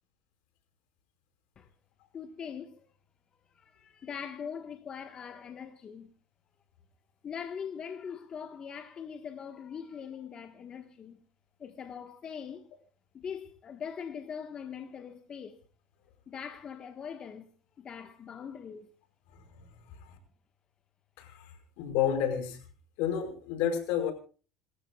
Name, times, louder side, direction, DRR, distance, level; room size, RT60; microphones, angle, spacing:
voice 1, 2.1-2.9 3.5-6.1 7.2-11.2 11.6-12.7 13.1-15.6 16.3-17.5 17.8-18.9, left 7 dB, 35° left, 1.4 m, -42 dB
voice 2, 21.2-22.6 23.0-24.1, left 9 dB, 75° left, 5.4 m, -31 dB
28.0 x 14.0 x 2.4 m
supercardioid pair, 100°, 2 cm